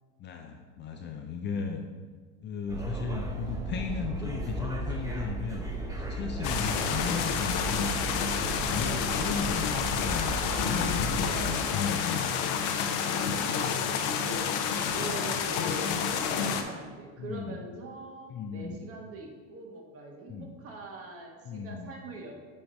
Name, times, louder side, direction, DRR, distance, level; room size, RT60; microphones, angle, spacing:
voice 1, 0.2-1.8 2.4-5.6 6.1-7.9 8.4-12.9 13.8-14.0 15.0-15.2 17.2-17.6 18.3-18.9 20.3-20.5 21.5-21.9, left 5 dB, 30° left, 4 dB, 0.5 m, -36 dB
sound 1, 2.7-11.5, right 1 dB, 10° right, 0.8 m, -35 dB
sound 2, 6.4-16.6, left 7 dB, 60° left, 0.8 m, -29 dB
voice 2, 6.5-6.9 8.8-9.5 11.0-12.1 13.5-22.3, right 2 dB, 40° right, 1 dB, 1.3 m, -42 dB
8.9 x 3.2 x 4.0 m, 1.4 s
supercardioid pair, 115°, 37 cm